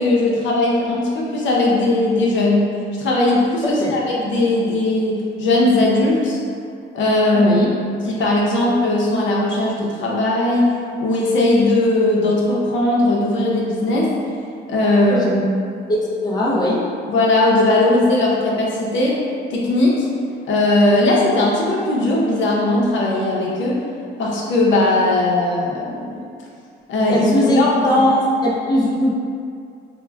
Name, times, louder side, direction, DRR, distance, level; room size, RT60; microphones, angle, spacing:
voice 1, 0.0-2.7 3.0-6.4 6.9-7.6 8.0-10.7 11.0-14.1 14.7-15.3 17.1-19.2 19.5-20.1 20.5-23.8 24.2-26.2 26.9-28.0, left 2 dB, 70° left, -4 dB, 0.6 m, -18 dB
voice 2, 3.6-4.0 7.3-7.7 15.1-15.3 15.9-16.9 27.1-29.1, left 1 dB, 20° left, -4 dB, 0.4 m, -19 dB
2.2 x 2.1 x 3.4 m, 2.4 s
cardioid pair, 90°, 20 cm